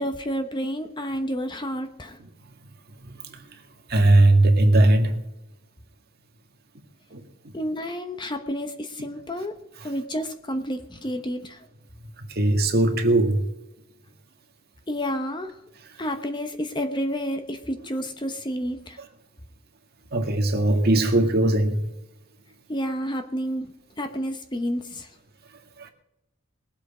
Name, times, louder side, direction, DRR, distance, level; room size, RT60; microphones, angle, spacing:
voice 1, 0.0-2.2 7.5-9.5 9.8-11.6 14.9-15.6 16.0-19.0 22.7-23.7 24.0-25.1, equal, 20° left, 0.9 m, -30 dB
voice 2, 3.0-3.4 3.9-5.2 7.1-7.2 9.8-9.9 12.3-13.5 20.1-21.9 25.8-25.9, right 2 dB, 50° right, 1.9 m, -19 dB
20.5 x 8.1 x 4.9 m
head